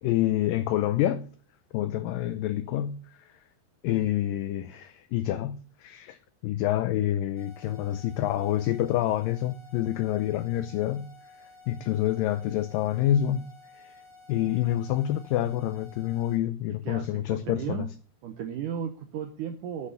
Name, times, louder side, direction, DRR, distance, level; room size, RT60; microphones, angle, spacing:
voice 1, 0.0-1.3 1.7-3.0 3.8-6.2 6.4-11.1 11.7-13.5 13.8-13.9 14.3-17.9, left 12 dB, 80° left, 2.1 m, -27 dB
sound 1, 7.4-16.4, left 3 dB, 15° left, 1.6 m, -53 dB
voice 2, 16.9-17.9 18.2-19.9, right 8 dB, 70° right, 2.2 m, -35 dB
8.4 x 8.2 x 8.1 m
omnidirectional pair, 4.4 m